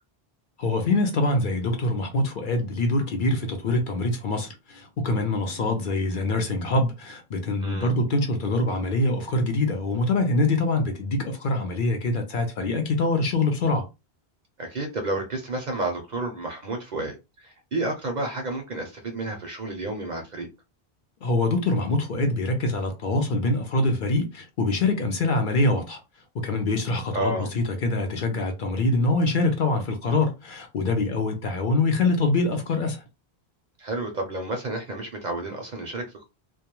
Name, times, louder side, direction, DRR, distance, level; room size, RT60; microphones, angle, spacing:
voice 1, 0.6-13.9 21.2-26.0 26.3-33.0, left 2 dB, 60° left, 0.7 m, -24 dB
voice 2, 14.6-20.5 27.1-27.5 33.8-36.3, right 2 dB, 55° right, 0.5 m, -31 dB
2.2 x 2.2 x 2.9 m
omnidirectional pair, 1.1 m